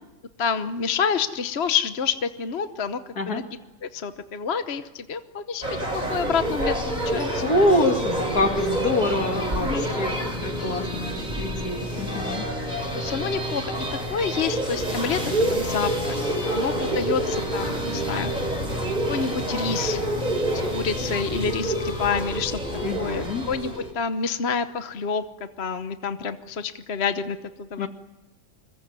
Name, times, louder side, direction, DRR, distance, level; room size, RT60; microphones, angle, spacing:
voice 1, 0.4-3.0 3.3-3.4 3.8-5.6 5.9-7.4 9.6-9.9 12.9-13.7 14.1-15.2 15.5-16.2 16.5-18.3 19.1-20.0 20.5-22.6 23.0-25.2 25.6-27.9, left 6 dB, 45° left, 9 dB, 1.2 m, -28 dB
sound 1, 5.6-23.9, right 1 dB, 25° right, 5.5 m, -27 dB
voice 2, 7.4-12.4 22.8-23.5 27.8-27.9, left 1 dB, 60° left, 5 dB, 2.8 m, -26 dB
26.5 x 22.0 x 9.6 m, 1.0 s
omnidirectional pair, 1.8 m